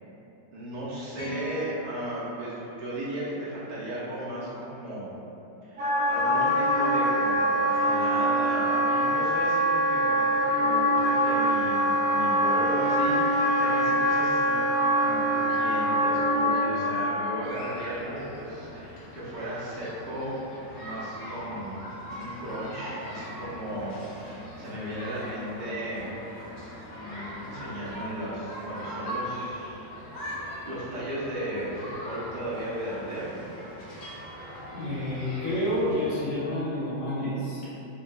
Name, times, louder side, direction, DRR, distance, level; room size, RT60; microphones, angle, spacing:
voice 1, 0.5-5.2 5.6-14.7 15.0-20.4 20.8-26.1 26.9-29.9 30.1-30.2 30.6-33.4, right 1 dB, 50° right, -9 dB, 0.5 m, -35 dB
sound 1, 1.1-3.5, right 1 dB, 15° left, 0.7 m, -43 dB
Wind instrument woodwind instrument, 5.8-17.1, equal, 75° right, 1.8 m, -24 dB
sound 2, 17.4-36.2, equal, 85° left, 1.5 m, -41 dB
voice 2, 34.7-37.6, left 1 dB, 65° left, -12 dB, 1.3 m, -29 dB
5.0 x 2.3 x 2.2 m, 2.9 s
omnidirectional pair, 1.9 m